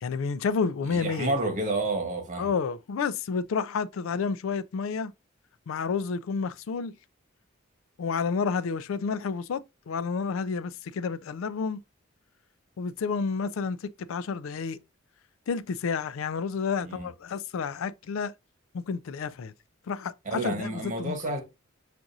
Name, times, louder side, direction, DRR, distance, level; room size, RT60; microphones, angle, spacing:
voice 1, 0.0-1.3 2.4-5.1 5.7-6.9 8.0-11.8 12.8-13.8 14.1-14.8 15.5-18.3 18.7-19.5 19.9-21.1, left 5 dB, 70° left, 0.4 m, -30 dB
voice 2, 0.9-2.5 16.8-17.1 20.2-21.4, right 2 dB, 40° right, 1.2 m, -30 dB
5.8 x 2.6 x 2.6 m
head